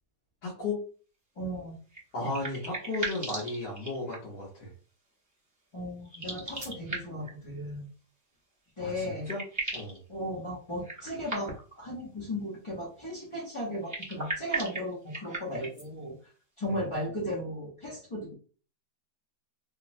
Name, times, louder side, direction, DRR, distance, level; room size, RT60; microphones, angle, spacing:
voice 1, 0.4-0.8 2.1-4.7 8.8-9.4 9.7-10.0 16.7-16.9, left 3 dB, 85° left, -7 dB, 1.7 m, -34 dB
voice 2, 1.4-1.8 5.7-7.8 8.8-9.3 10.1-11.5 11.8-16.1 16.6-18.3, equal, 55° left, -4 dB, 0.3 m, -36 dB
sound 1, 1.9-4.4 6.0-7.3 8.7-8.8 9.0-10.0 10.8-11.8 13.7-15.9, right 2 dB, 25° right, 0.4 m, -37 dB
3.6 x 2.0 x 2.5 m, 0.38 s
omnidirectional pair, 1.8 m